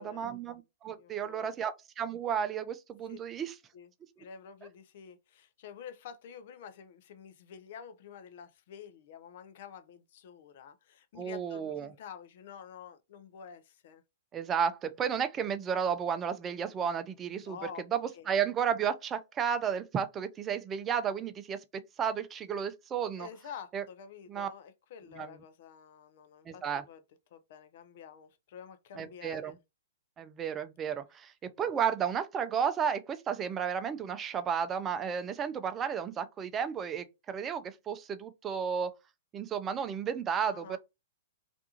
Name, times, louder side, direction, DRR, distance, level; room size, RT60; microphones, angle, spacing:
voice 1, 0.0-3.6 11.2-11.9 14.3-17.6 17.9-18.0 18.3-21.6 22.0-23.3 23.7-23.8 24.3-24.5 25.2-25.4 26.5-26.8 29.0-29.5 30.2-31.3 31.6-38.9 39.3-40.8, right 7 dB, 25° right, 0.4 m, -33 dB
voice 2, 1.0-1.5 3.1-3.2 3.7-3.9 4.2-14.0 17.4-18.3 23.2-27.0 27.3-29.6 40.5-40.8, left 7 dB, 55° left, 0.5 m, -49 dB
2.5 x 2.3 x 2.8 m
hypercardioid pair, 120°, 0 cm